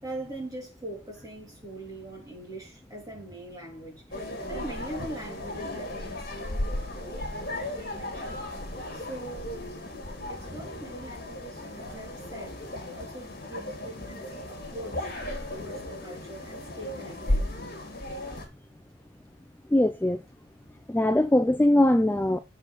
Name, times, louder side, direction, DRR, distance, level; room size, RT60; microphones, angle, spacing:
voice 1, 0.0-8.4 8.9-9.5 10.3-12.6 12.9-15.1 15.5-17.5 17.9-18.1, right 1 dB, 20° right, 3.1 m, -42 dB
sound 1, 4.1-18.5, left 1 dB, 45° left, 2.4 m, -35 dB
voice 2, 19.7-20.2 20.9-22.4, left 1 dB, 10° left, 0.3 m, -21 dB
7.0 x 5.0 x 4.1 m
head